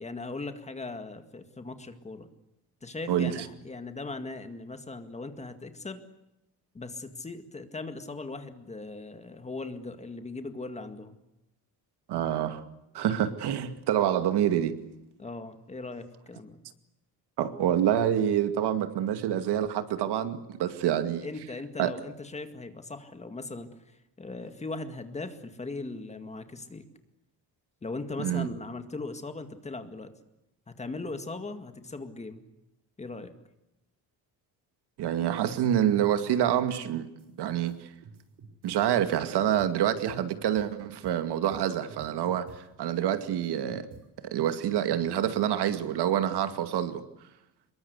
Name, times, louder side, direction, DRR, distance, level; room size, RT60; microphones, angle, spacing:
voice 1, 0.0-2.3 2.8-6.0 6.7-11.2 15.2-16.6 21.2-26.8 27.8-30.1 30.7-32.4 33.0-33.3, left 3 dB, 15° left, 2.0 m, -39 dB
voice 2, 12.1-12.6 12.9-14.7 17.4-21.2 21.8-21.9 28.2-28.5 35.0-37.1 37.4-37.9 38.6-43.9 44.2-47.0, right 10 dB, 80° right, 2.3 m, -27 dB
sound 1, 35.7-36.8 37.2-37.3 37.7-37.8 38.0-40.7 41.0-41.2 41.5-44.1, right 5 dB, 50° right, 5.5 m, -50 dB
26.0 x 22.5 x 8.3 m
cardioid pair, 175°, 39 cm